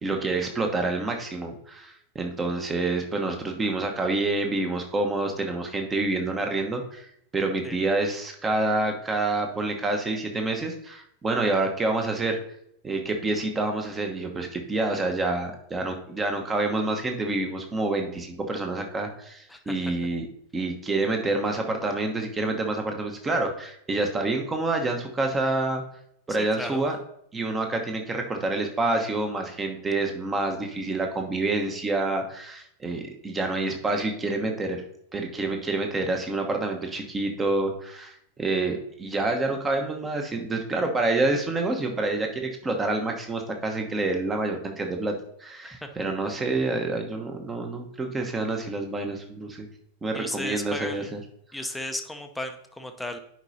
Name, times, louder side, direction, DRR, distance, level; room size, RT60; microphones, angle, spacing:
voice 1, 0.0-12.4 12.8-20.3 20.5-25.8 26.3-27.0 27.3-34.8 35.1-49.7 50.0-51.2, right 2 dB, 15° right, 3 dB, 1.1 m, -27 dB
voice 2, 26.3-26.8 45.6-45.9 50.1-51.1 51.5-53.2, left 1 dB, 5° left, 5 dB, 0.7 m, -35 dB
10.5 x 5.0 x 2.7 m, 0.71 s
figure-of-eight pair, 90°, 0 cm